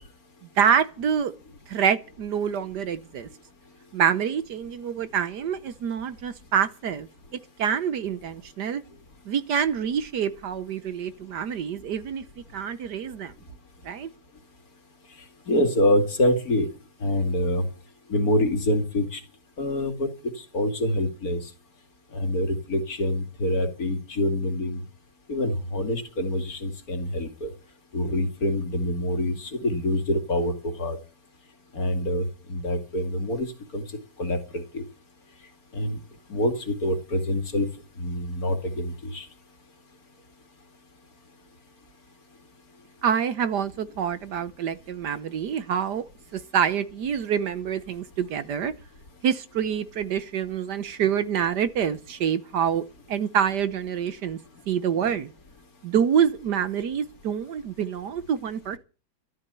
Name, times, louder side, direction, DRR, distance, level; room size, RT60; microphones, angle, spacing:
voice 1, 0.6-1.3 1.7-3.3 3.9-7.1 7.6-8.8 9.3-12.2 12.5-13.3 13.8-14.1 43.0-46.0 46.3-48.7 49.2-54.4 54.7-55.3 55.8-58.8, right 8 dB, 65° right, 1.4 m, -26 dB
voice 2, 15.5-16.7 17.0-17.7 18.1-19.2 19.6-21.4 22.1-24.8 25.3-27.5 27.9-31.0 31.7-33.8 34.2-34.8 35.7-36.0 36.3-37.7 38.0-39.3, left 1 dB, 50° left, 2.8 m, -26 dB
13.0 x 13.0 x 6.8 m
omnidirectional pair, 2.1 m